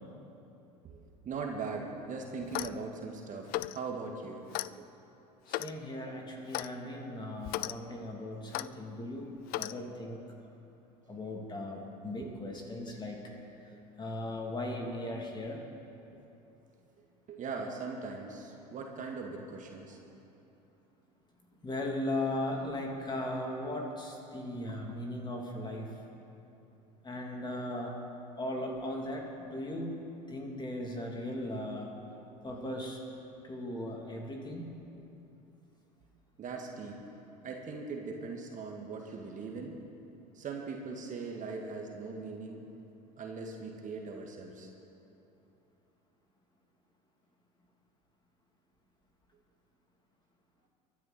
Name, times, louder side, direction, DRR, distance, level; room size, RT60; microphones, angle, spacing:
voice 1, 0.8-4.4 4.7-4.8 12.2-12.9 17.3-20.0 36.4-37.0 37.4-39.8 40.4-42.7 43.2-44.7, right 4 dB, 40° right, 1 dB, 1.9 m, -40 dB
Clock, 2.4-2.8 3.5-3.8 4.5-4.7 5.5-5.8 6.5-6.7 7.4-7.7 8.5-8.7 9.5-9.7, left 18 dB, 45° left, 0.4 m, -35 dB
voice 2, 5.5-10.2 11.1-13.3 14.0-15.6 21.6-25.9 27.0-27.9 28.4-30.0 30.3-32.0 32.4-33.0 33.4-34.6, left 1 dB, 20° left, 0 dB, 3.0 m, -37 dB
24.0 x 10.5 x 4.3 m, 2.9 s
hypercardioid pair, 75°, 21 cm